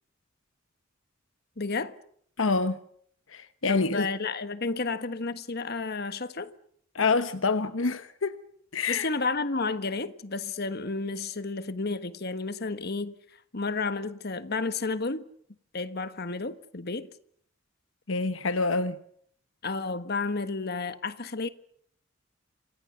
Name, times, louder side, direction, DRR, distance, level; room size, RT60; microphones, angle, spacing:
voice 1, 1.6-2.0 3.7-6.5 8.9-13.1 13.5-15.2 15.7-17.1 19.6-21.5, left 3 dB, 50° left, 1.4 m, -31 dB
voice 2, 2.4-2.8 3.3-4.1 6.9-8.4 8.7-9.1 18.1-19.0, left 4 dB, 75° left, 1.1 m, -26 dB
27.5 x 26.0 x 6.9 m
head